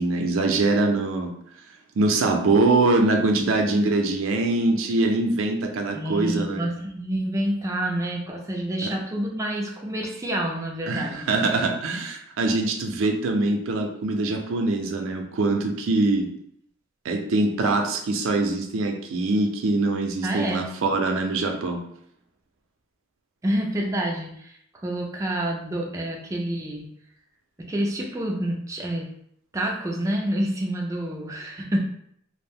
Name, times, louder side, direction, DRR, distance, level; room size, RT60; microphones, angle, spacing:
voice 1, 0.0-1.3 2.0-6.7 8.8-8.9 10.9-16.3 17.0-21.8, right 2 dB, 80° right, 3 dB, 0.5 m, -23 dB
voice 2, 5.9-11.3 20.2-20.7 23.4-26.9 27.6-29.1 29.5-31.8, right 1 dB, 15° right, 0 dB, 0.3 m, -28 dB
2.4 x 2.0 x 3.4 m, 0.70 s
head